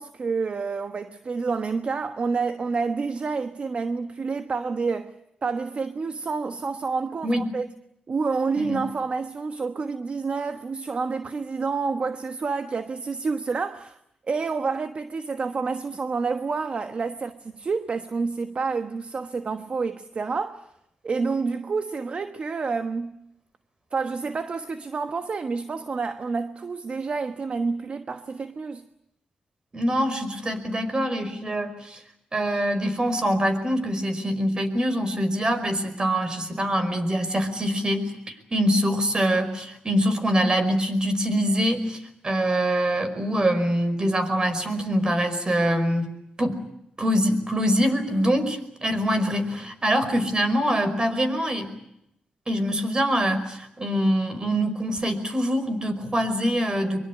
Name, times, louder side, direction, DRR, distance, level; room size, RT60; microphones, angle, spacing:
voice 1, 0.0-5.1 5.4-7.7 8.1-14.0 14.3-20.7 21.0-23.2 23.9-28.8, right 4 dB, 45° right, 1.2 m, -28 dB
voice 2, 29.7-32.0 32.3-46.1 46.4-46.6 47.0-51.7 52.5-57.0, equal, 30° right, 5.1 m, -24 dB
23.5 x 23.5 x 8.5 m
cardioid pair, 80°, 3 cm